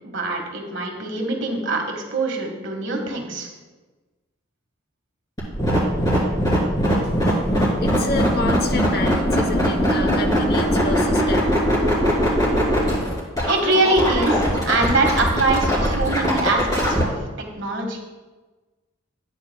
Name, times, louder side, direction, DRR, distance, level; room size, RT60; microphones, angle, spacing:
voice 1, 0.0-1.8 2.1-3.5 13.5-17.1 17.6-18.0, right 2 dB, 60° right, 2 dB, 1.7 m, -23 dB
sound 1, 5.4-17.0, equal, 20° left, 3.3 m, -20 dB
voice 2, 7.8-11.5, left 2 dB, 50° left, 5 dB, 1.0 m, -28 dB
14.0 x 9.1 x 2.3 m, 1.2 s
head